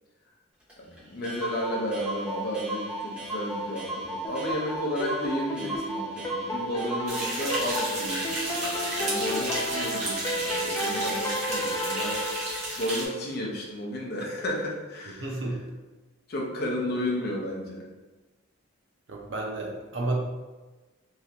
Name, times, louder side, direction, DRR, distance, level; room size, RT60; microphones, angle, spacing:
Clock, 0.7-0.8 1.0-1.1 1.2-7.9, right 1 dB, 5° right, 0.8 m, -35 dB
voice 1, 0.8-12.2 12.8-15.3 16.3-17.9, equal, 50° left, -1 dB, 0.6 m, -32 dB
sound 1, 4.2-13.1, equal, 15° left, 0.3 m, -33 dB
sound 2, 7.1-13.1, right 1 dB, 35° right, 0.9 m, -32 dB
voice 2, 15.1-15.6 19.1-20.2, right 2 dB, 65° right, -1 dB, 0.6 m, -31 dB
3.1 x 2.5 x 2.8 m, 1.2 s
head